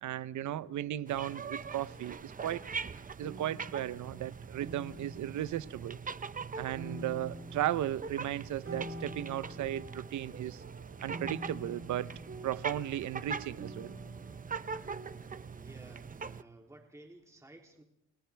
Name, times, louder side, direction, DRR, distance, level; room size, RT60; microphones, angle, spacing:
voice 1, 0.0-2.6 3.2-6.0 6.6-10.6 11.0-12.1 12.4-13.9, right 12 dB, 75° right, 0.9 m, -35 dB
sound 1, 1.0-16.4, right 5 dB, 25° right, 0.8 m, -43 dB
sound 2, 2.0-2.4 3.2-6.4 6.8-15.1, right 1 dB, 45° right, 3.8 m, -48 dB
voice 2, 15.4-17.8, right 2 dB, 10° right, 3.2 m, -55 dB
30.0 x 28.0 x 3.5 m
cardioid pair, 90°, 30 cm